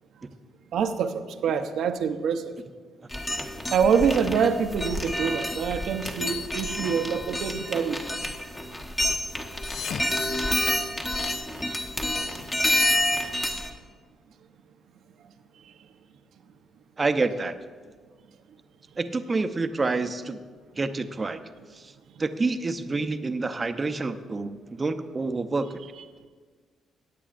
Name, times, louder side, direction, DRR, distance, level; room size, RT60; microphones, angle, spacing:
voice 1, 0.7-2.5 3.7-8.0 12.7-13.1, right 6 dB, 75° right, 8 dB, 0.7 m, -25 dB
sound 1, 3.1-13.7, left 1 dB, 20° left, 1.1 m, -28 dB
sound 2, 9.4-11.3, left 7 dB, 60° left, 0.3 m, -39 dB
voice 2, 17.0-17.6 19.0-20.4 20.8-21.4 21.7-21.9 22.2-25.8, right 3 dB, 30° right, 9 dB, 0.6 m, -28 dB
17.0 x 8.5 x 2.5 m, 1.5 s
cardioid pair, 90°, 0 cm